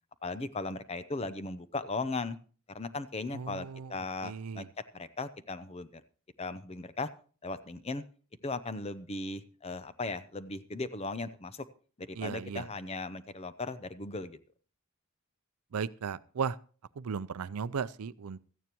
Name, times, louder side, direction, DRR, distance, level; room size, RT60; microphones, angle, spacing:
voice 1, 0.2-2.4 2.7-4.7 4.9-6.0 6.4-7.1 7.4-8.0 8.4-11.7 12.0-14.4, left 3 dB, 30° left, 0.6 m, -37 dB
voice 2, 3.3-3.9 4.2-4.7 12.2-12.7 15.7-16.6 17.0-18.5, right 6 dB, 85° right, 0.5 m, -36 dB
16.5 x 13.5 x 3.0 m
head